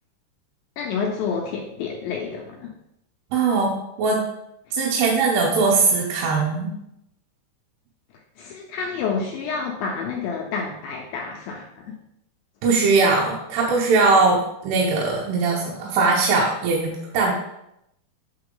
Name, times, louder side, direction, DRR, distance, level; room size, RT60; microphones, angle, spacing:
voice 1, 0.8-2.7 4.7-4.8 8.4-12.0, left 5 dB, 80° left, 1 dB, 2.1 m, -29 dB
voice 2, 3.3-4.2 4.7-6.7 12.6-17.3, right 4 dB, 85° right, -3 dB, 3.0 m, -20 dB
8.6 x 3.8 x 3.8 m, 0.81 s
omnidirectional pair, 4.6 m